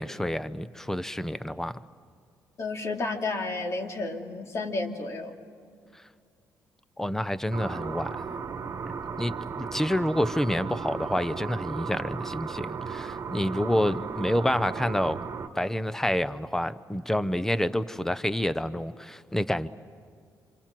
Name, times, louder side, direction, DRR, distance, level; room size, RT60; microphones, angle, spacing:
voice 1, 0.0-1.8 7.0-8.2 9.2-15.3 15.5-19.7, left 1 dB, 5° left, 14 dB, 0.8 m, -28 dB
voice 2, 2.6-5.3, left 3 dB, 45° left, 3 dB, 2.7 m, -31 dB
sound 1, 7.5-15.5, right 6 dB, 50° right, 1.3 m, -35 dB
27.0 x 26.5 x 7.7 m, 2.2 s
cardioid pair, 100°, 7 cm